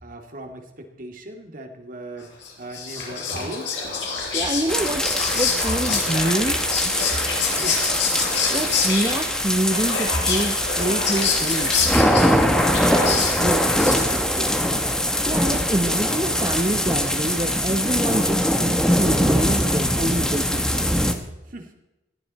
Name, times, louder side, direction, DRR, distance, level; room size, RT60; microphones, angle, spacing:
voice 1, 0.0-3.8 7.6-7.9 12.9-14.6 21.5-21.7, right 1 dB, 50° right, 4 dB, 2.2 m, -36 dB
Whispering, 2.4-14.4, left 5 dB, 70° left, 5.3 m, -27 dB
voice 2, 4.3-5.0 5.3-6.6 8.5-11.9 15.3-20.8, right 1 dB, 20° right, 4 dB, 0.9 m, -26 dB
sound 1, 4.7-21.1, equal, 5° left, 1.2 m, -22 dB
19.5 x 15.0 x 4.2 m, 0.98 s
head